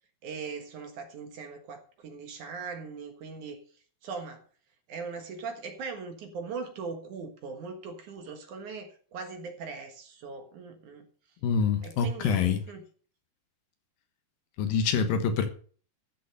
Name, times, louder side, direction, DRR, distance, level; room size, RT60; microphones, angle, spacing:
voice 1, 0.2-3.6 4.0-4.4 4.9-11.1 11.8-12.8, right 4 dB, 60° right, 2.6 m, -40 dB
voice 2, 11.4-12.6 14.6-15.5, left 6 dB, 70° left, 2.9 m, -26 dB
13.5 x 6.5 x 6.5 m
omnidirectional pair, 4.5 m